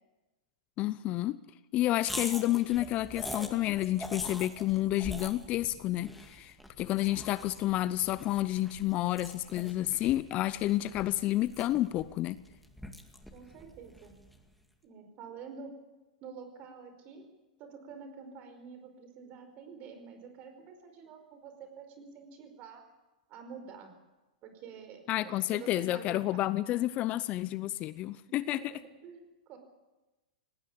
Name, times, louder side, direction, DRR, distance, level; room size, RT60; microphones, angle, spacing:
voice 1, 0.8-1.4 1.7-12.4 25.1-28.7, left 15 dB, 35° left, 17 dB, 0.7 m, -30 dB
sound 1, 2.0-14.5, left 1 dB, ahead, 2.0 m, -45 dB
voice 2, 13.3-14.1 14.8-15.8 16.2-17.2 17.6-22.8 23.3-23.9 24.4-26.5 28.4-29.6, right 6 dB, 35° right, 7 dB, 5.0 m, -48 dB
18.5 x 18.5 x 8.8 m, 1.1 s
hypercardioid pair, 125°, 4 cm